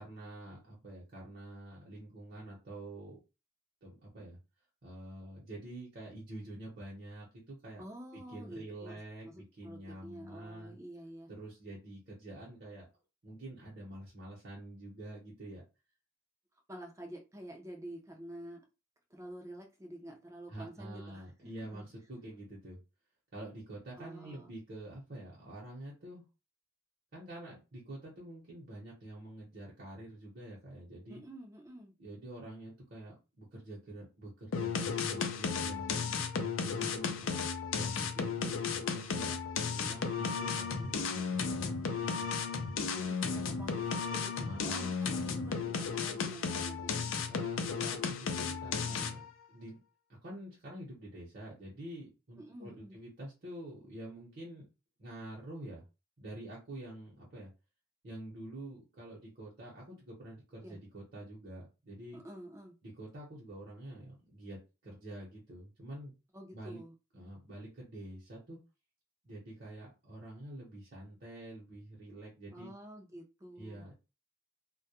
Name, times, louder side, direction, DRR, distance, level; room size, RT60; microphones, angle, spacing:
voice 1, 0.0-3.2 3.8-4.4 4.8-7.8 8.1-10.8 11.3-12.9 13.2-15.6 20.5-22.8 23.3-26.2 27.1-31.2 32.0-36.0 36.3-37.4 37.7-39.4 39.7-42.3 44.4-45.0 47.3-49.8 50.2-54.7 55.0-55.8 56.2-57.5 58.0-62.2 62.8-66.1 66.5-66.8 67.1-68.6 69.2-72.7 73.6-73.9, right 1 dB, 50° right, 0.8 m, -47 dB
voice 2, 7.8-11.3 16.7-18.6 19.1-21.8 24.0-24.5 31.1-31.9 43.0-47.0 52.4-53.0 60.6-60.8 62.1-62.7 66.3-67.0 72.5-73.9, right 1 dB, 15° right, 0.5 m, -49 dB
sound 1, 34.5-49.3, left 5 dB, 75° left, 0.4 m, -34 dB
2.2 x 2.1 x 2.8 m
head